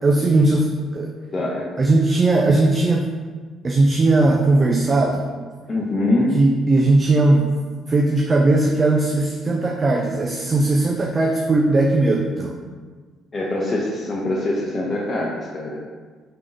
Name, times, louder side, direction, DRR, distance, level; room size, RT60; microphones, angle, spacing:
voice 1, 0.0-1.1 1.8-3.1 3.6-5.2 6.3-7.5 7.9-12.5, right 2 dB, 35° right, 1 dB, 0.4 m, -18 dB
voice 2, 1.3-1.6 5.7-6.4 13.3-15.8, left 1 dB, 35° left, -4 dB, 0.7 m, -23 dB
4.5 x 3.6 x 2.5 m, 1.5 s
hypercardioid pair, 50°, 0 cm